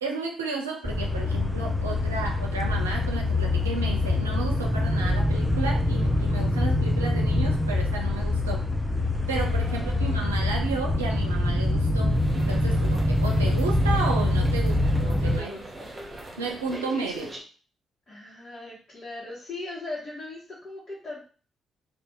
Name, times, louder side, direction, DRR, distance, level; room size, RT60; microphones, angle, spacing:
voice 1, 0.0-8.6 9.3-15.5 16.4-17.3, right 3 dB, 85° right, 0 dB, 0.4 m, -33 dB
sound 1, 0.8-15.4, left 1 dB, ahead, 0.6 m, -24 dB
voice 2, 9.6-10.2 15.1-15.9 18.1-21.2, left 2 dB, 45° left, -8 dB, 1.2 m, -39 dB
sound 2, 12.1-17.4, right 1 dB, 25° right, 1.0 m, -41 dB
2.6 x 2.4 x 3.6 m, 0.40 s
figure-of-eight pair, 40°, 0 cm